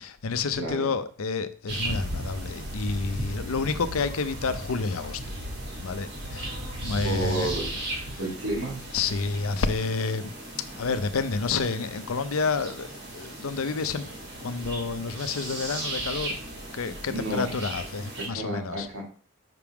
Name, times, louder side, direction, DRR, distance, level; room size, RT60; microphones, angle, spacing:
voice 1, 0.0-5.2 5.8-6.5 6.8-7.5 8.1-8.2 8.9-10.3 10.8-16.4 16.7-18.9, left 4 dB, 80° left, 0.6 m, -29 dB
voice 2, 0.6-0.9 7.0-7.7 8.2-8.8 17.1-17.5 18.2-19.0, right 2 dB, 75° right, 2.5 m, -31 dB
sound 1, 1.7-18.3, right 1 dB, 50° right, 2.1 m, -36 dB
5.8 x 3.6 x 5.9 m
head